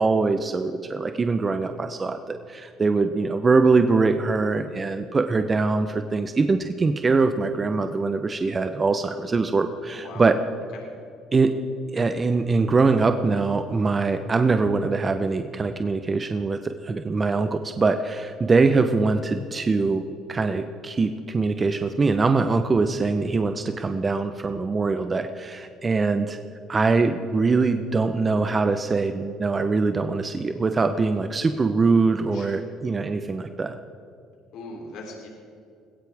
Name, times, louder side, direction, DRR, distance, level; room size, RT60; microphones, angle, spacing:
voice 1, 0.0-10.4 11.3-11.5 11.9-20.0 20.3-26.4 26.7-33.8, right 4 dB, 30° right, 8 dB, 0.9 m, -23 dB
voice 2, 9.9-10.2 10.7-10.8 32.3-32.6 34.5-35.3, left 3 dB, 70° left, 0 dB, 3.4 m, -40 dB
22.0 x 16.5 x 3.6 m, 2.5 s
supercardioid pair, 75°, 0 cm